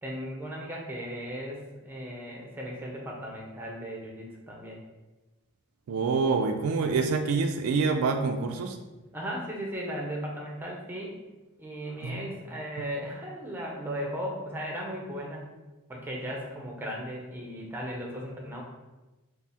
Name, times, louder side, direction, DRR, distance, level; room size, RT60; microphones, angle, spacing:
voice 1, 0.0-4.8 9.1-11.2 11.6-15.6 15.9-18.6, equal, 10° right, -2 dB, 0.5 m, -36 dB
voice 2, 5.9-8.8 12.0-12.4, right 4 dB, 75° right, 5 dB, 0.3 m, -26 dB
3.5 x 2.0 x 4.1 m, 1.1 s
head